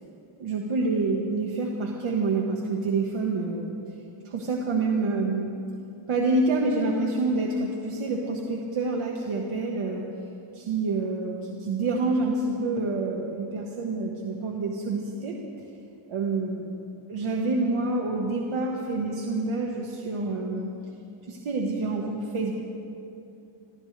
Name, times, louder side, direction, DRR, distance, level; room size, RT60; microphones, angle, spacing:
voice 1, 0.4-3.7 4.2-5.5 6.1-10.0 10.6-15.3 16.1-16.8 17.1-20.7 21.3-22.5, right 3 dB, 85° right, -1 dB, 1.5 m, -27 dB
26.5 x 15.5 x 3.4 m, 2.8 s
wide cardioid pair, 145°, 49 cm